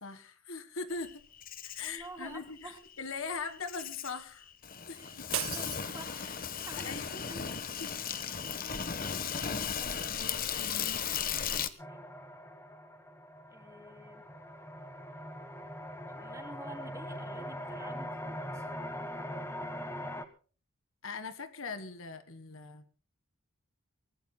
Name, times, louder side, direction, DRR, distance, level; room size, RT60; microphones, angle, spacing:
voice 1, 0.0-1.2 1.6-4.5 4.9-5.3 6.7-7.3 7.8-7.9 9.1-9.6 10.1-11.0 21.0-22.8, left 4 dB, 65° left, 10 dB, 1.7 m, -41 dB
Insect, 1.0-11.7, left 7 dB, 40° left, 1.2 m, -36 dB
voice 2, 1.8-2.8 4.9-6.4 6.7-7.5 9.5-10.1 11.2-12.1 13.5-14.3 16.1-18.7, right 1 dB, 15° right, 4 dB, 2.9 m, -50 dB
sound 1, 5.3-6.6, right 12 dB, 70° right, 0.9 m, -38 dB
sound 2, 11.8-20.3, equal, 10° left, 1.5 m, -42 dB
24.0 x 19.5 x 2.3 m, 0.38 s
head